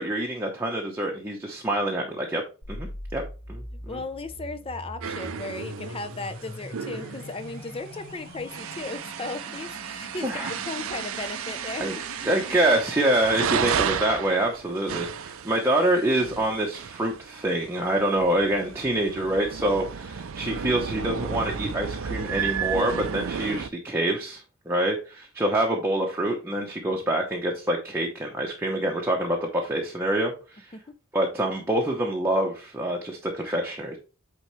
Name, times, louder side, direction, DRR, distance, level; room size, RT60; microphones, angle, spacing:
voice 1, 0.0-2.4 2.7-3.2 3.5-4.0 10.2-10.5 11.8-11.9 12.2-30.7 31.1-34.0, right 1 dB, 10° right, 0.9 m, -26 dB
sound 1, 2.6-12.6, left 1 dB, 55° left, 1.8 m, -42 dB
voice 2, 3.9-10.3 10.7-11.9, left 3 dB, 25° left, 0.6 m, -36 dB
sound 2, 5.0-23.7, right 7 dB, 70° right, 0.5 m, -33 dB
8.8 x 3.8 x 3.1 m
head